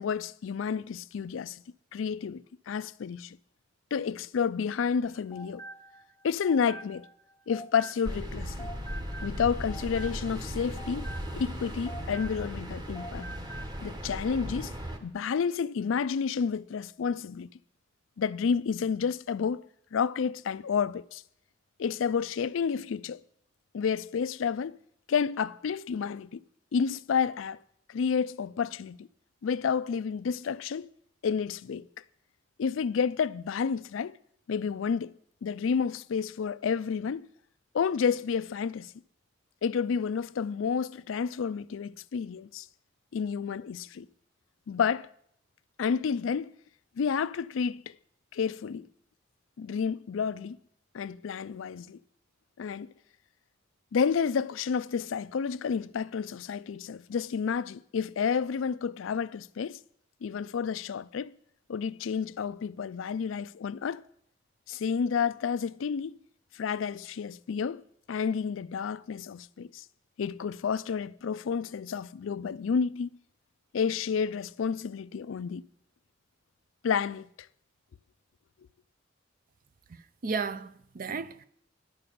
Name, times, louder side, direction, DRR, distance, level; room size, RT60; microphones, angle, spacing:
voice 1, 0.0-1.6 1.9-3.4 3.9-5.6 6.2-7.1 7.5-8.7 9.2-13.3 13.8-14.7 15.0-17.5 18.2-19.6 19.9-21.2 21.8-23.2 23.7-24.8 25.1-26.4 26.7-27.6 27.9-29.1 29.4-30.9 31.2-31.8 32.6-34.1 34.5-35.1 35.4-37.3 37.7-38.9 39.6-42.7 43.1-44.1 44.7-45.1 45.8-46.5 47.0-47.9 48.3-48.9 49.6-50.6 50.9-52.0 52.6-52.9 53.9-59.8 60.2-61.3 61.7-64.0 64.7-66.2 66.5-67.8 68.1-69.8 70.2-73.1 73.7-75.6 76.8-77.3, left 6 dB, 80° left, 0.4 m, -30 dB
sound 1, 5.0-8.3 8.6-12.7 12.9-13.8, right 1 dB, 15° left, 0.8 m, -46 dB
sound 2, 8.0-15.0, equal, 20° right, 1.1 m, -37 dB
voice 2, 79.9-81.5, right 5 dB, 45° right, 0.5 m, -34 dB
10.5 x 6.7 x 8.5 m
head